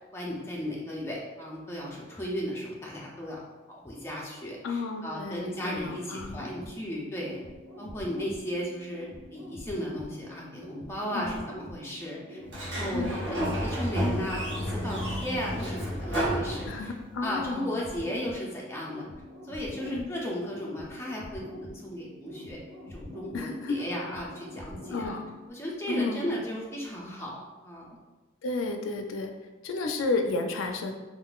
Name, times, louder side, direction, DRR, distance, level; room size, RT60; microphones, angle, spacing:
voice 1, 0.1-3.4 3.7-7.4 7.8-16.9 17.2-19.0 19.4-22.6 22.9-25.1 25.5-27.9, equal, 15° left, -4 dB, 0.5 m, -35 dB
voice 2, 4.6-6.4 11.1-11.3 12.9-13.1 16.6-17.8 19.9-20.0 23.3-23.8 24.9-25.3 25.9-26.4 28.4-29.3 29.6-30.9, left 3 dB, 75° left, 4 dB, 0.4 m, -32 dB
sound 1, 5.5-25.5, equal, 75° right, 1.2 m, -45 dB
Sliding door, 12.5-17.2, equal, 60° right, 1.0 m, -31 dB
3.7 x 2.4 x 2.3 m, 1.2 s
head